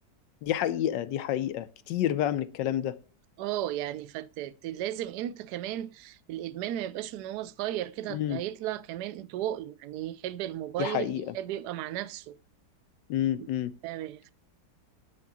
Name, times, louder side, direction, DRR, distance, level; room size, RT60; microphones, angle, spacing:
voice 1, 0.4-3.0 8.1-8.4 10.8-11.3 13.1-13.7, left 11 dB, 85° left, 1.3 m, -29 dB
voice 2, 3.4-12.4 13.4-13.5 13.8-14.3, right 12 dB, 70° right, 1.1 m, -35 dB
10.5 x 3.7 x 7.4 m
omnidirectional pair, 1.9 m